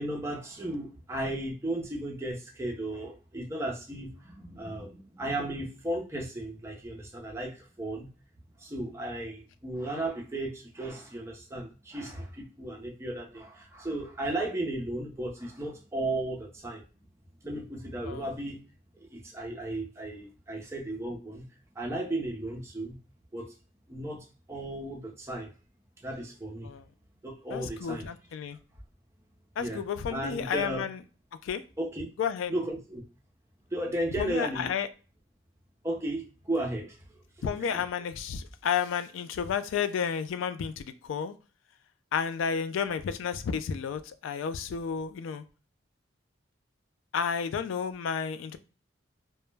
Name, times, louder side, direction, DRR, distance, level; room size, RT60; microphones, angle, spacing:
voice 1, 0.0-8.1 8.6-16.8 17.4-18.6 18.9-21.4 21.8-23.0 23.3-23.5 23.9-24.2 24.5-25.5 26.0-26.7 27.2-28.1 29.6-29.8 30.1-30.9 31.8-32.1 32.5-33.0 33.7-34.7 35.8-37.0 37.7-37.8, right 1 dB, 15° right, 0.5 m, -35 dB
voice 2, 27.5-28.6 29.6-31.0 31.4-31.6 32.2-32.5 34.2-34.9 37.4-41.3 42.1-45.4 47.1-48.6, left 7 dB, 85° left, 0.3 m, -31 dB
2.1 x 2.1 x 3.1 m
head